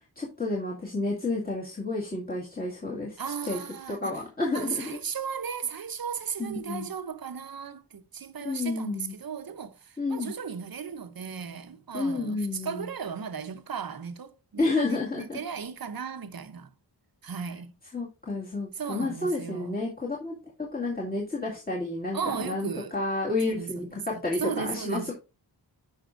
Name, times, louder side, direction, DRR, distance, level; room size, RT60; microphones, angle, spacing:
voice 1, 0.2-3.2 3.4-3.6 3.9-5.0 6.4-6.9 8.4-9.2 10.0-10.3 11.9-12.9 14.6-15.4 17.9-25.1, left 2 dB, 20° left, 2.1 m, -30 dB
voice 2, 3.2-4.1 4.5-16.7 17.2-17.7 18.8-19.8 22.1-22.9 23.5-23.9 24.1-25.1, right 6 dB, 55° right, 0.9 m, -36 dB
11.5 x 5.6 x 2.6 m
wide cardioid pair, 100°, 42 cm